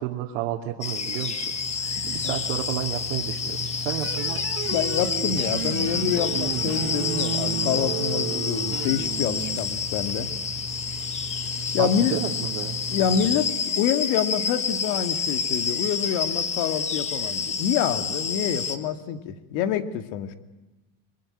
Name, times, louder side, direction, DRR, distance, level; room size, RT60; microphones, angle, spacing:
voice 1, 0.0-1.5 2.0-4.5 11.8-12.8, right 13 dB, 85° right, 1 dB, 2.7 m, -31 dB
sound 1, 0.8-18.8, left 5 dB, 20° left, 1.7 m, -29 dB
Mechanical fan, 1.5-13.4, right 1 dB, 5° left, 3.9 m, -38 dB
sound 2, 4.0-9.6, right 16 dB, 45° right, 1.1 m, -32 dB
voice 2, 4.7-10.3 11.7-12.2 12.9-20.4, left 9 dB, 60° left, 9 dB, 2.3 m, -27 dB
25.5 x 23.5 x 10.0 m, 1.1 s
cardioid pair, 165°, 35 cm